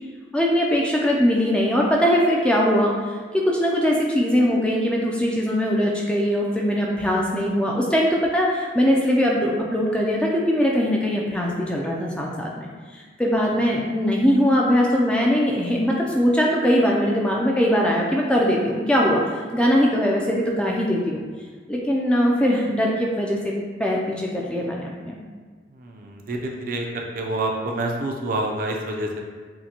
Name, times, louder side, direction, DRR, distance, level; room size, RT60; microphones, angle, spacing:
voice 1, 0.3-21.2 21.7-23.5 23.8-25.2, equal, 5° left, -2 dB, 0.3 m, -21 dB
voice 2, 25.7-29.2, right 2 dB, 50° right, 1 dB, 0.5 m, -28 dB
6.3 x 2.2 x 2.9 m, 1.5 s
head